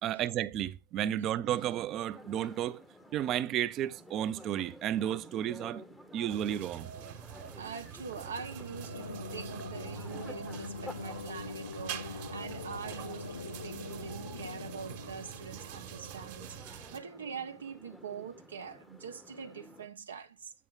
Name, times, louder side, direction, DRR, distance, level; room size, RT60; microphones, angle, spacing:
voice 1, 0.0-2.8 3.1-5.8 6.1-6.9, right 11 dB, 30° right, 0.4 m, -32 dB
sound 1, 2.1-19.9, left 1 dB, 5° left, 0.7 m, -52 dB
sound 2, 6.3-17.0, right 10 dB, 45° right, 1.2 m, -45 dB
voice 2, 7.6-20.5, right 6 dB, 85° right, 0.8 m, -44 dB
sound 3, 8.4-16.1, left 6 dB, 85° left, 0.4 m, -44 dB
8.4 x 4.8 x 3.8 m
hypercardioid pair, 130°, 0 cm